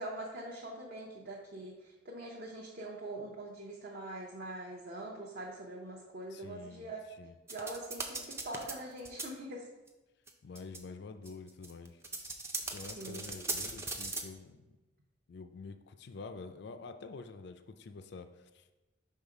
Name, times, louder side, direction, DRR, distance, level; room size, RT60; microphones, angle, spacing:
voice 1, 0.0-7.0 7.5-9.7 13.0-13.6, right 1 dB, 45° right, -3 dB, 0.7 m, -43 dB
voice 2, 6.3-6.9 7.2-7.4 10.4-12.0 12.7-14.6 15.3-18.8, left 4 dB, 55° left, 9 dB, 0.4 m, -47 dB
sound 1, 7.5-8.7 9.0-9.2 9.9-10.0 10.3-10.4 10.6-10.8 11.3-14.2, right 3 dB, 15° right, 0.4 m, -38 dB
5.5 x 3.7 x 4.8 m, 1.1 s
head